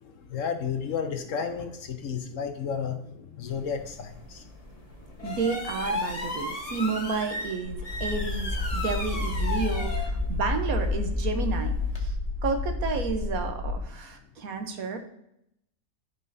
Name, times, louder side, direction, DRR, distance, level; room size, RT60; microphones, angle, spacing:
voice 1, 0.0-4.4 5.2-5.4, left 6 dB, 65° left, 6 dB, 1.2 m, -32 dB
sound 1, 3.5-12.1, left 1 dB, 25° left, 1.3 m, -36 dB
voice 2, 5.2-12.1 12.4-15.0, right 4 dB, 80° right, 5 dB, 1.4 m, -31 dB
sound 2, 7.6-13.8, left 3 dB, 60° right, 2.0 m, -29 dB
13.0 x 5.4 x 2.7 m, 0.78 s
omnidirectional pair, 1.5 m